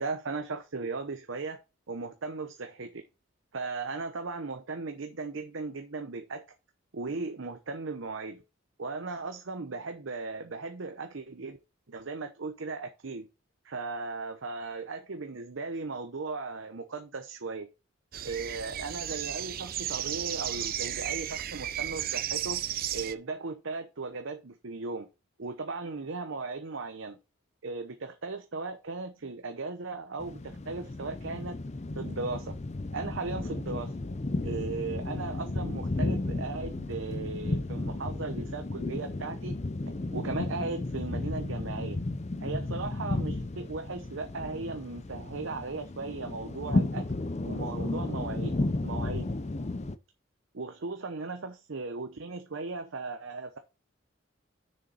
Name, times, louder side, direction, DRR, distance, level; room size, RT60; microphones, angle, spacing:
voice 1, 0.0-1.6 1.9-3.0 3.5-6.4 6.9-8.4 8.8-11.6 11.9-13.3 13.6-17.7 18.2-22.6 22.9-25.1 25.4-27.2 27.6-31.6 32.0-32.5 32.9-34.0 34.4-39.6 40.1-42.0 42.4-47.1 47.4-49.4 50.5-53.6, right 3 dB, 70° right, 0.8 m, -37 dB
sound 1, 18.1-23.1, right 11 dB, 45° right, 0.5 m, -34 dB
sound 2, 30.2-50.0, left 2 dB, 35° left, 0.5 m, -33 dB
6.7 x 6.4 x 4.1 m
head